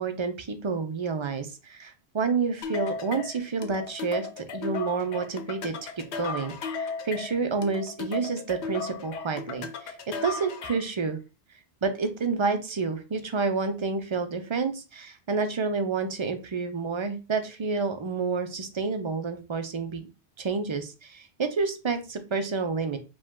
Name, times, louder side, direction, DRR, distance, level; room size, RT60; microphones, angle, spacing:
voice 1, 0.0-5.8 6.2-11.2 11.8-20.0 20.4-23.0, right 4 dB, 35° right, 7 dB, 0.5 m, -29 dB
sound 1, 2.6-11.0, left 5 dB, 80° left, 0.9 m, -36 dB
5.0 x 2.3 x 3.6 m, 0.30 s
omnidirectional pair, 1.1 m